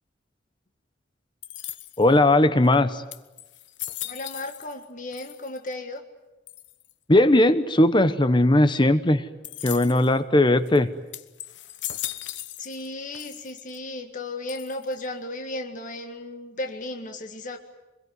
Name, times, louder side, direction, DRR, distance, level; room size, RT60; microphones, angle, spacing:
sound 1, 1.4-2.2 2.7-2.8 3.1-4.9 5.1-5.7 6.5-6.9 9.4-10.1 10.7-10.8 11.1-12.9 13.1-13.8 14.5-15.1, left 13 dB, 75° left, 1.1 m, -37 dB
voice 1, 2.0-3.0 7.1-9.3 9.6-10.9, left 1 dB, 25° left, 12 dB, 0.9 m, -18 dB
voice 2, 4.0-6.0 12.6-17.6, left 2 dB, 45° left, 5 dB, 1.8 m, -35 dB
26.0 x 22.0 x 9.5 m, 1.0 s
head